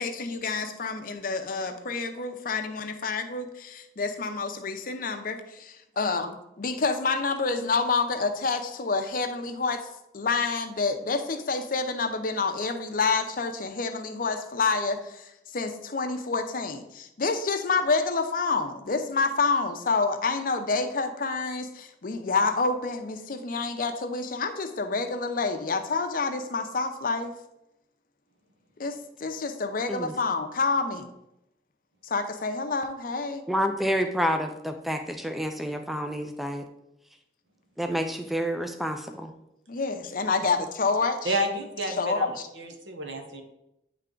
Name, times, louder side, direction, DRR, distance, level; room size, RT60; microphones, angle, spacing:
voice 1, 0.0-9.9 10.1-27.3 28.8-31.1 32.0-33.4 39.7-41.4 41.9-42.5, left 4 dB, 50° left, 7 dB, 0.6 m, -28 dB
voice 2, 33.5-36.7 37.8-39.3, equal, ahead, 5 dB, 0.4 m, -29 dB
voice 3, 41.2-42.3 42.6-43.4, right 1 dB, 80° right, 4 dB, 1.0 m, -30 dB
9.3 x 3.3 x 3.8 m, 0.85 s
head